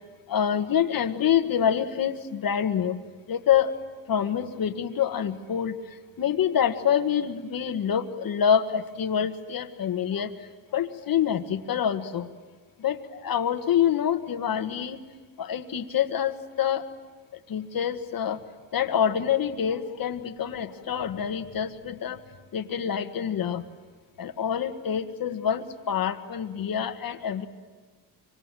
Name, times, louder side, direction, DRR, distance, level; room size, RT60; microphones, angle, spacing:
voice 1, 0.3-3.0 3.3-3.8 4.1-5.8 6.2-10.3 10.7-12.3 12.8-15.0 15.4-16.9 17.5-18.4 18.7-22.2 22.5-23.7 24.2-27.5, left 8 dB, 50° left, 8 dB, 1.6 m, -26 dB
26.0 x 25.0 x 9.2 m, 1.4 s
cardioid pair, 145°, 44 cm